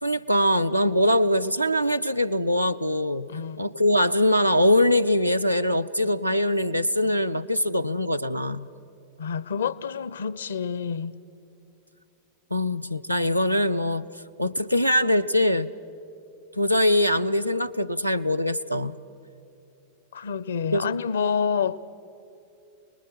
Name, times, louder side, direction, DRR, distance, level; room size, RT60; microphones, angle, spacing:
voice 1, 0.0-3.3 3.6-8.7 12.5-14.1 14.4-15.7 16.6-19.0 20.7-20.9, left 1 dB, 90° right, 0.5 m, -22 dB
voice 2, 3.3-3.6 9.2-11.2 20.1-21.8, left 6 dB, 65° left, 0.6 m, -28 dB
28.5 x 20.5 x 7.5 m
figure-of-eight pair, 90°, 0 cm